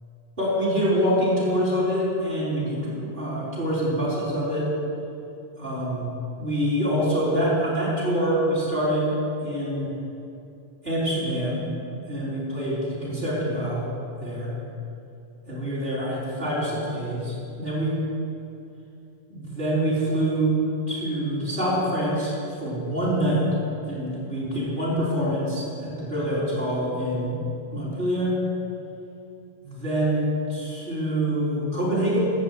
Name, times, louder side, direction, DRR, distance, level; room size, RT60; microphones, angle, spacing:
voice 1, 0.4-4.7 5.6-6.1 6.4-9.1 9.4-9.9 10.8-11.7 12.1-13.9 14.2-14.5 15.5-18.0 19.3-20.6 20.9-23.4 23.8-27.4 27.7-28.4 29.6-32.2, equal, 40° right, -8 dB, 3.7 m, -25 dB
11.5 x 7.4 x 7.9 m, 2.6 s
omnidirectional pair, 1.3 m